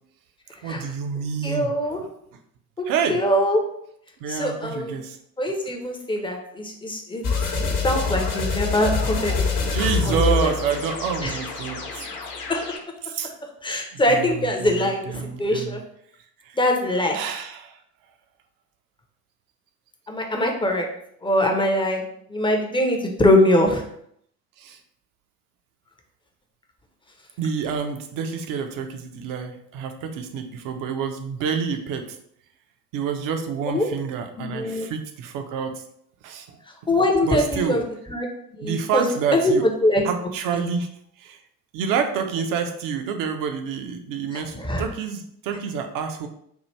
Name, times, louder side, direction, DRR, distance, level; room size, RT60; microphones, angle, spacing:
voice 1, 0.6-2.1 2.9-3.2 4.2-5.2 9.7-12.0 13.0-13.3 13.9-15.8 16.4-16.6 17.1-17.8 24.6-24.8 27.4-32.2 32.9-35.8 36.2-36.5 37.3-37.8 38.6-39.7 40.0-40.9 41.2-41.4 41.7-46.3, right 6 dB, 45° right, 6 dB, 0.7 m, -28 dB
voice 2, 1.4-2.0 2.8-2.9 3.1-3.6 4.3-5.0 5.4-7.2 7.8-9.7 10.0-10.5 11.2-11.4 12.5-12.6 13.6-15.8 16.5-17.2 20.1-20.8 21.2-23.8 33.7-33.9 34.4-34.9 36.9-37.8 38.1-38.3 38.6-40.0 44.3-44.9, left 1 dB, 10° left, 2 dB, 0.7 m, -22 dB
sound 1, 7.2-12.8, left 4 dB, 50° left, 1.0 m, -25 dB
4.5 x 2.4 x 3.2 m, 0.70 s
figure-of-eight pair, 55°, 46 cm